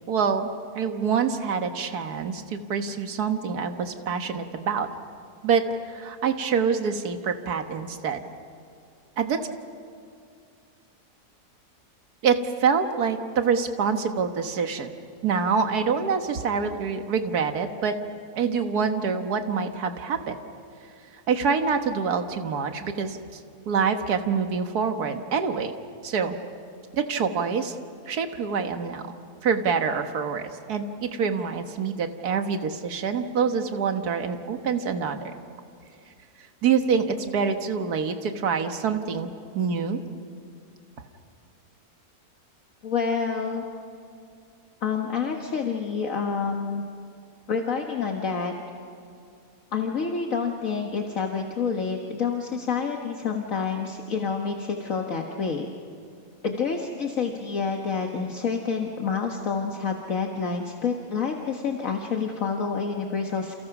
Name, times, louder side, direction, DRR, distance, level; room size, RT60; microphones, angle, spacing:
voice 1, 0.1-0.5 0.7-4.9 5.4-8.2 9.2-9.5 12.2-14.9 15.2-18.0 18.3-20.4 21.3-23.2 23.7-25.7 26.0-26.4 26.9-27.8 28.1-29.2 29.4-35.3 36.6-40.0, right 6 dB, 75° right, 6 dB, 1.9 m, -26 dB
voice 2, 42.8-43.6 44.8-46.8 47.5-48.5 49.7-55.7 56.4-63.6, left 5 dB, 55° left, 2 dB, 1.8 m, -28 dB
29.5 x 28.5 x 6.1 m, 2.4 s
omnidirectional pair, 1.7 m